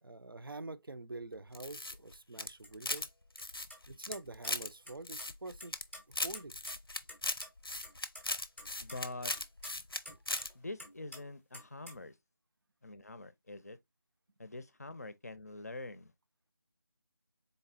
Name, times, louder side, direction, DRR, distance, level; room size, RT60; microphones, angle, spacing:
voice 1, 0.0-3.1 3.9-5.8 6.1-6.6, right 2 dB, 75° right, 0.5 m, -46 dB
sound 1, 1.5-3.1 3.4-4.7 5.1-5.8 6.1-10.0 10.3-10.5, left 2 dB, 85° left, 0.6 m, -38 dB
sound 2, 2.6-2.7 3.0-3.1 3.4-3.5 3.7-4.5 4.8-5.3 5.6-7.2 7.4-7.5 7.8-8.2 8.6-10.5 10.8-11.2 11.5-12.0, left 1 dB, ahead, 0.6 m, -49 dB
voice 2, 8.8-9.3 10.5-12.2 12.8-13.8 14.4-16.1, left 2 dB, 45° left, 0.5 m, -45 dB
4.0 x 3.4 x 2.5 m
figure-of-eight pair, 165°, 12 cm